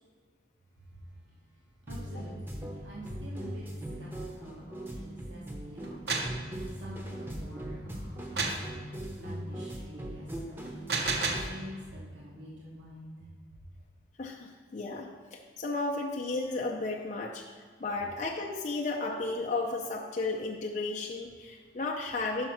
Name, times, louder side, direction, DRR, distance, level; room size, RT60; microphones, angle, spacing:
sound 1, 1.9-11.5, right 1 dB, 10° right, 0.7 m, -40 dB
voice 1, 1.9-3.6 4.0-4.1 4.3-6.1 6.8-8.6 9.1-10.7 11.1-11.8 12.1-13.3, equal, 80° right, -5 dB, 1.2 m, -47 dB
sound 2, 5.8-6.4 8.4-8.7 10.7-11.5, right 4 dB, 60° right, 0.8 m, -30 dB
voice 2, 14.2-22.5, left 3 dB, 40° left, 0 dB, 0.5 m, -34 dB
5.7 x 5.2 x 5.8 m, 1.5 s
head